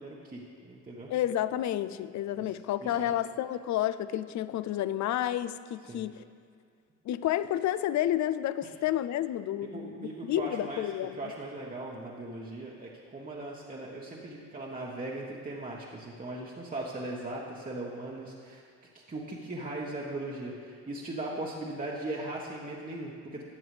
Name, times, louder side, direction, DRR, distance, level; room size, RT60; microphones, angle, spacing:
voice 1, 0.0-1.1 2.3-2.6 2.8-3.1 5.9-6.0 8.6-8.7 9.7-10.8 11.2-18.6 18.9-23.4, right 2 dB, 25° right, -3 dB, 1.1 m, -39 dB
voice 2, 1.1-6.2 7.1-11.2, left 12 dB, 60° left, 15 dB, 0.5 m, -30 dB
13.0 x 7.6 x 3.3 m, 2.1 s
supercardioid pair, 60°, 33 cm